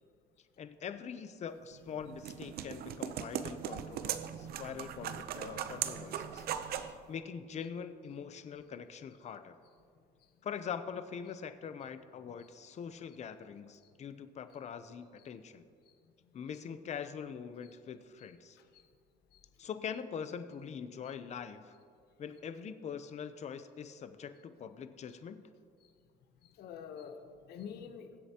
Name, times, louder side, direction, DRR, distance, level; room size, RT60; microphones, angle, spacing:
voice 1, 0.6-6.5 7.1-9.5 10.4-15.6 16.3-18.6 19.6-21.8 22.2-25.4, left 7 dB, 40° left, 11 dB, 0.7 m, -43 dB
sound 1, 1.7-7.0, right 9 dB, 65° right, 0.6 m, -39 dB
voice 2, 6.6-6.9 18.7-18.8 19.3-19.4 26.4-28.2, left 7 dB, 70° left, 8 dB, 0.9 m, -47 dB
21.5 x 8.0 x 2.9 m, 2.2 s
cardioid pair, 110°, 17 cm